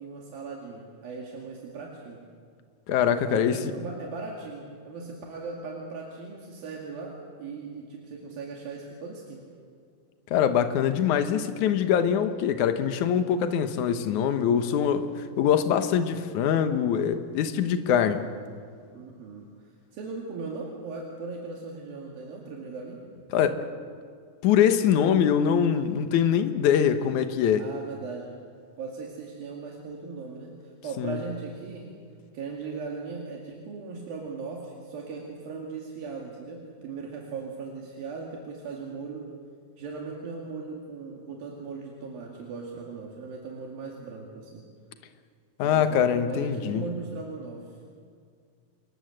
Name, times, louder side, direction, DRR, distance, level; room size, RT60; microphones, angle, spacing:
voice 1, 0.0-2.2 3.2-9.5 17.9-18.3 18.9-19.5 19.9-23.0 27.6-28.3 28.8-31.9 32.3-39.3 39.8-44.6 45.6-47.8, right 4 dB, 80° right, -1 dB, 4.1 m, -38 dB
voice 2, 2.9-3.6 10.3-18.2 23.3-23.6 24.4-27.7 31.0-31.2 45.6-46.8, left 8 dB, 65° left, 8 dB, 2.4 m, -23 dB
27.5 x 22.0 x 7.9 m, 2.1 s
omnidirectional pair, 4.1 m